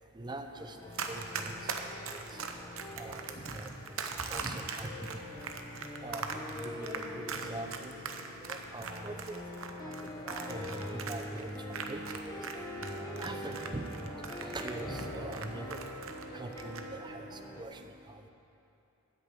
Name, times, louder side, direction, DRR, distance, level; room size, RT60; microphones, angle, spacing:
voice 1, 0.1-0.8 1.1-1.7 2.1-2.4 3.0-5.2 6.0-7.9 8.4-9.4 9.8-12.5 13.2-15.8 16.3-17.8 18.1-18.2, right 2 dB, 20° right, 6 dB, 0.7 m, -43 dB
sound 1, 0.6-17.6, left 1 dB, 15° left, 1.3 m, -43 dB
Run, 0.9-12.5 12.8-16.2 16.5-16.8, right 6 dB, 70° right, 0.9 m, -40 dB
sound 2, 3.0-9.4, equal, 85° left, 1.5 m, -60 dB
13.0 x 6.8 x 8.3 m, 2.9 s
head